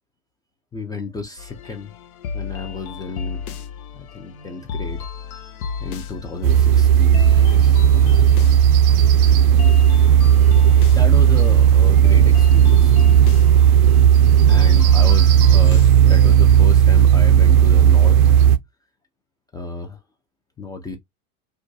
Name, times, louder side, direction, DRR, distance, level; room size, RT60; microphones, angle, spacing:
voice 1, 0.7-1.9 2.3-3.5 3.9-5.1 5.8-9.4 10.8-13.0 14.5-18.3 19.5-20.0 20.6-21.0, left 3 dB, 10° left, 0.3 m, -33 dB
sound 1, 1.4-16.2, left 6 dB, 80° left, 0.6 m, -33 dB
sound 2, 6.4-18.6, right 9 dB, 70° right, 0.5 m, -13 dB
2.3 x 2.2 x 2.6 m
hypercardioid pair, 80°, 43 cm